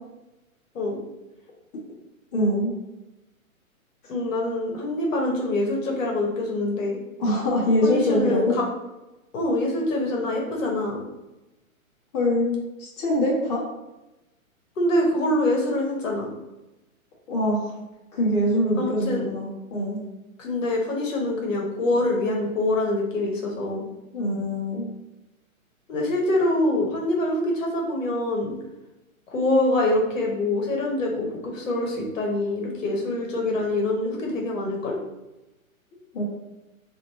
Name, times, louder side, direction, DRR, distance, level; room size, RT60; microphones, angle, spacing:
voice 1, 2.3-2.8 7.2-8.6 12.1-13.6 17.3-17.7 18.1-20.0 24.1-24.9 36.1-36.2, left 1 dB, 30° left, -6 dB, 0.9 m, -24 dB
voice 2, 4.1-7.0 7.8-8.6 9.3-11.0 14.8-16.3 18.8-19.3 20.4-23.8 25.9-28.5 29.3-35.0, left 1 dB, 60° left, -1 dB, 1.1 m, -25 dB
4.1 x 2.6 x 3.0 m, 0.98 s
hypercardioid pair, 150°, 43 cm